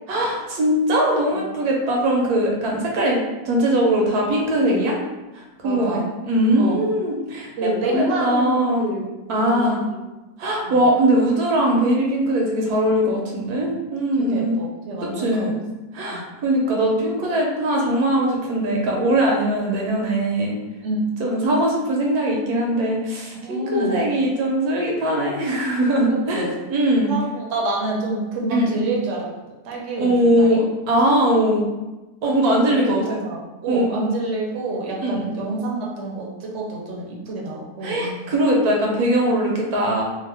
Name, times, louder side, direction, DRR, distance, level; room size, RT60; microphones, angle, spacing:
voice 1, 0.1-5.0 5.3-8.9 9.3-9.8 10.4-14.6 15.0-15.6 15.9-20.5 21.2-27.1 28.5-28.7 30.0-31.7 32.2-33.2 33.7-34.1 35.0-35.2 37.8-40.0, right 1 dB, 80° right, -1 dB, 1.2 m, -21 dB
voice 2, 5.6-6.1 6.6-6.8 7.6-9.6 9.9-10.0 10.6-10.9 13.5-13.7 14.2-15.5 16.1-16.2 20.8-21.0 23.4-24.0 26.3-26.5 27.1-29.3 29.6-30.6 32.3-38.1, right 2 dB, 60° right, -3 dB, 0.9 m, -27 dB
2.8 x 2.5 x 3.2 m, 1.1 s
omnidirectional pair, 1.6 m